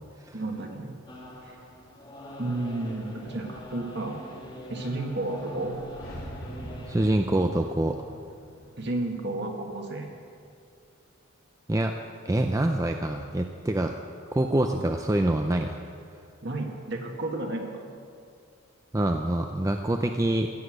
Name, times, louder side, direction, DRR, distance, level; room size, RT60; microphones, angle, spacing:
voice 1, 0.3-0.9 1.4-1.6 2.4-4.2 4.7-5.8 8.8-10.1 16.4-17.7, right 2 dB, 55° right, 2 dB, 1.7 m, -32 dB
sound 1, 1.1-7.0, left 1 dB, 25° left, 1.6 m, -44 dB
sound 2, 5.5-10.4, right 1 dB, 85° left, 3.0 m, -44 dB
voice 2, 6.9-8.0 11.7-11.9 12.3-14.0 14.3-15.8 18.9-20.5, right 1 dB, 15° right, 5 dB, 0.4 m, -25 dB
15.0 x 8.2 x 7.9 m, 2.3 s
head